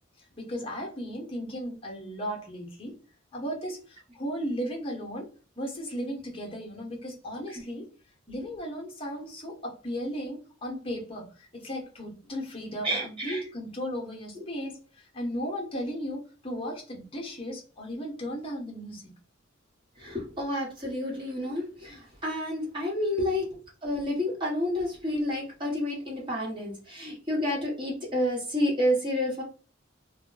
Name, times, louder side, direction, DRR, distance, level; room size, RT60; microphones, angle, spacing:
voice 1, 0.4-2.9 3.3-5.3 5.6-7.9 8.3-14.8 15.1-19.1 23.2-23.4, equal, 30° left, 0.9 m, -35 dB
voice 2, 12.8-13.4 20.0-23.4 23.8-29.4, left 1 dB, 25° right, 1.1 m, -29 dB
2.2 x 2.1 x 3.8 m
head